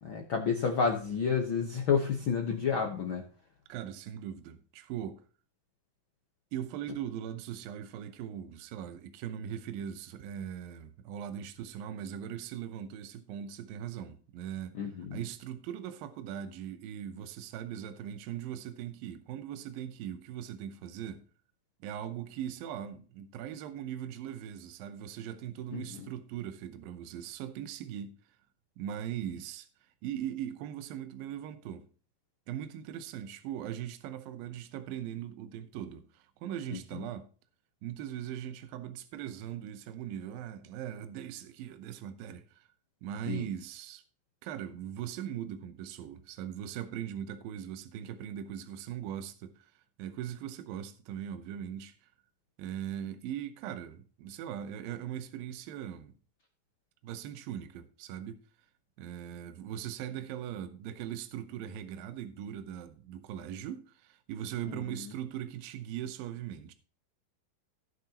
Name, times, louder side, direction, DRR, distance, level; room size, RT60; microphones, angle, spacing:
voice 1, 0.0-3.2 14.7-15.2 25.7-26.1 36.7-36.8 43.3-43.5 64.7-65.1, left 6 dB, 80° left, 1.1 m, -30 dB
voice 2, 3.7-5.3 6.5-14.8 15.1-21.3 21.8-28.4 28.8-29.7 30.0-31.9 32.5-37.3 37.8-42.7 43.0-44.0 44.4-52.1 52.6-56.1 57.0-58.4 59.0-66.7, right 10 dB, 80° right, 2.6 m, -40 dB
17.5 x 6.6 x 2.9 m
omnidirectional pair, 4.2 m